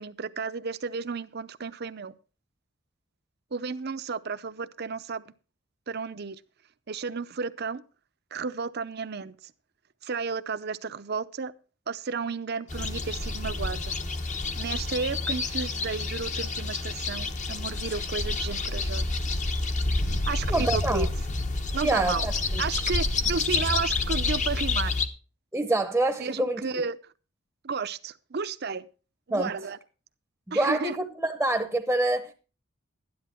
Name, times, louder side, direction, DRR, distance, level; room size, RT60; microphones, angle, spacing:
voice 1, 0.0-2.1 3.5-5.2 5.9-6.4 6.9-7.8 8.3-9.5 10.0-11.5 11.9-13.9 14.6-19.2 20.3-21.1 21.7-22.3 22.6-24.9 26.2-27.0 27.6-28.9 29.3-29.8 30.5-31.0, right 5 dB, 50° right, 0.7 m, -33 dB
sound 1, 12.7-25.1, left 3 dB, 35° left, 1.1 m, -29 dB
voice 2, 20.5-21.1 21.8-22.6 25.5-26.6 29.3-29.5 30.5-32.3, right 2 dB, 5° right, 0.8 m, -26 dB
12.5 x 10.5 x 4.4 m
head